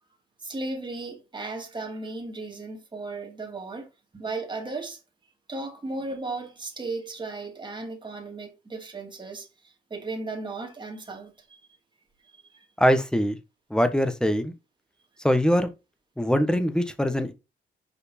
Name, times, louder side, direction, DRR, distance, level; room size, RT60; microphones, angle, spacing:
voice 1, 0.4-3.9 4.1-5.0 5.5-11.6 12.3-12.7, right 3 dB, 25° right, 2.8 m, -36 dB
voice 2, 12.8-13.4 13.7-14.5 15.2-15.7 16.2-17.3, equal, 5° left, 1.4 m, -22 dB
7.2 x 5.0 x 4.3 m
cardioid pair, 90°, 20 cm